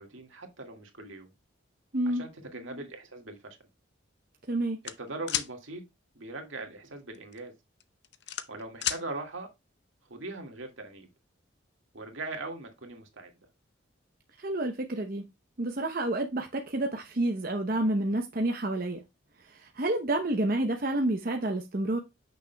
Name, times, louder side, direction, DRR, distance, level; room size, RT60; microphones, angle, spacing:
voice 1, 0.0-1.3 2.1-3.6 5.0-5.8 6.2-7.5 8.5-9.5 10.1-11.1 11.9-13.3, right 2 dB, 75° right, 1.9 m, -40 dB
voice 2, 1.9-2.3 4.5-4.8 14.4-15.2 15.6-19.0 19.4-22.0, right 1 dB, 45° right, 0.7 m, -29 dB
sound 1, 4.8-5.5 7.1-7.4 7.8-9.0, left 11 dB, 55° left, 0.6 m, -31 dB
8.4 x 6.3 x 2.2 m
head